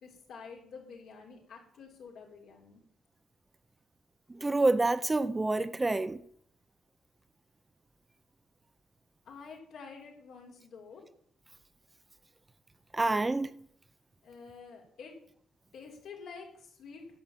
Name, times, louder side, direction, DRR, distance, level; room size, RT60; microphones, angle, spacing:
voice 1, 0.0-2.8 9.3-11.0 14.2-15.1 15.7-17.0, left 5 dB, 70° left, 3.8 m, -49 dB
voice 2, 4.4-6.2 12.9-13.5, right 2 dB, 20° right, 0.7 m, -27 dB
11.0 x 7.1 x 7.3 m
cardioid pair, 90°, 0 cm